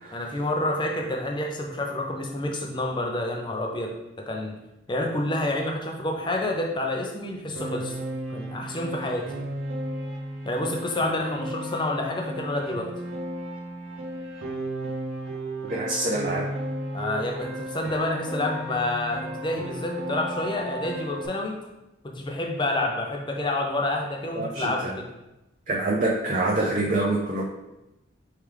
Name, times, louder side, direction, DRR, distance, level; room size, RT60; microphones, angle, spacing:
voice 1, 0.1-4.6 4.9-8.0 8.3-9.3 10.4-12.9 16.9-21.6 22.0-25.1, left 1 dB, 25° left, 1 dB, 0.5 m, -28 dB
Piano, 7.6-21.3, right 1 dB, 80° right, 0.7 m, -34 dB
voice 2, 15.7-16.4 24.4-24.9 25.7-27.5, right 2 dB, 40° right, -3 dB, 0.5 m, -26 dB
4.8 x 3.3 x 3.3 m, 0.96 s
head